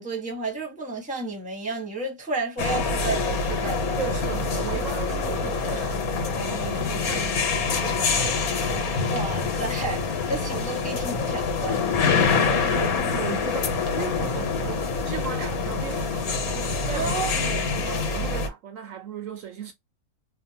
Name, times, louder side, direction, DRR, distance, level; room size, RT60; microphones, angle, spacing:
voice 1, 0.0-3.9 9.1-11.8 16.9-17.3, right 3 dB, 5° right, 0.9 m, -31 dB
sound 1, 2.6-18.5, left 4 dB, 80° left, 1.4 m, -26 dB
voice 2, 4.0-6.0 6.3-9.3 12.0-19.7, right 8 dB, 70° right, 0.9 m, -36 dB
2.8 x 2.1 x 2.8 m
omnidirectional pair, 1.5 m